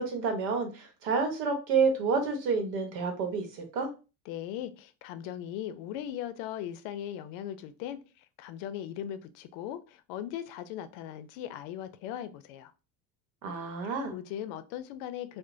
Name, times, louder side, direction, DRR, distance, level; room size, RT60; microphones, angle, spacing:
voice 1, 0.0-3.9 13.4-14.1, right 4 dB, 90° right, 0.9 m, -29 dB
voice 2, 4.3-12.7 13.8-15.4, left 10 dB, 70° left, 0.5 m, -39 dB
2.8 x 2.1 x 2.5 m
supercardioid pair, 90°, 48 cm